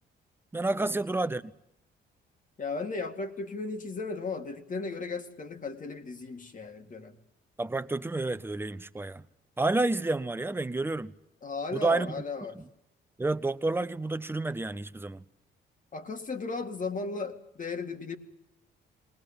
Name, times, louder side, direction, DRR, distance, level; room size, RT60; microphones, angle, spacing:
voice 1, 0.5-1.5 7.6-9.2 9.6-11.1 11.7-12.2 12.5-12.6 13.2-15.2, right 2 dB, 10° right, 0.7 m, -30 dB
voice 2, 2.6-7.2 11.4-12.6 15.9-18.2, left 4 dB, 40° left, 2.2 m, -36 dB
20.0 x 19.0 x 8.8 m
cardioid pair, 90°, 20 cm